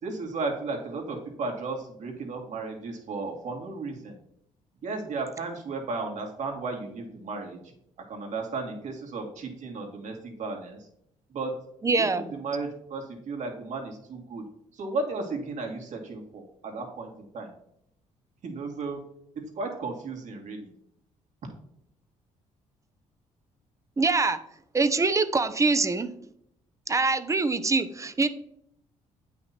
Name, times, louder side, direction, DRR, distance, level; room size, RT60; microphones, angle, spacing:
voice 1, 0.0-4.2 4.8-7.6 8.1-10.8 11.3-11.5 12.0-14.5 14.7-17.5 18.4-19.0 19.6-20.7, right 3 dB, 65° right, 1 dB, 2.6 m, -34 dB
voice 2, 11.8-12.2 24.0-24.4 24.7-26.1 26.9-28.3, right 3 dB, 25° right, 11 dB, 0.9 m, -24 dB
9.0 x 5.9 x 4.4 m, 0.73 s
cardioid pair, 95°, 13 cm